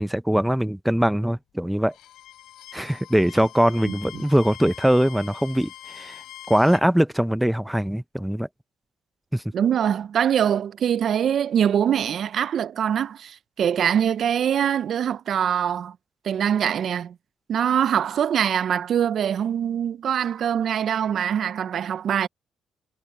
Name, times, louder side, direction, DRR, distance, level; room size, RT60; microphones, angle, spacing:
voice 1, 0.0-1.9 2.7-6.2 6.5-8.5 9.3-9.4, equal, 5° right, 0.5 m, -22 dB
Bowed string instrument, 1.9-6.9, left 13 dB, 85° left, 3.0 m, -43 dB
voice 2, 3.8-4.2 9.5-16.0 16.2-17.2 17.5-22.3, right 9 dB, 60° right, 0.5 m, -23 dB
cardioid pair, 90°, 0 cm